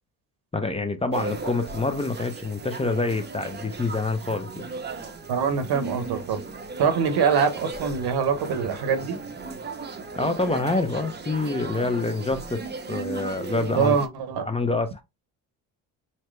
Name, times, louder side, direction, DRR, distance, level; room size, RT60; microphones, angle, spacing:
voice 1, 0.5-4.7 10.2-12.6 12.9-14.0 14.5-15.0, left 3 dB, 15° left, 0.7 m, -26 dB
sound 1, 1.1-14.1, right 4 dB, 25° right, 0.8 m, -36 dB
voice 2, 5.3-6.4 6.8-9.2 13.7-14.5, right 6 dB, 65° right, 1.0 m, -24 dB
4.2 x 2.1 x 3.2 m
supercardioid pair, 65°, 40 cm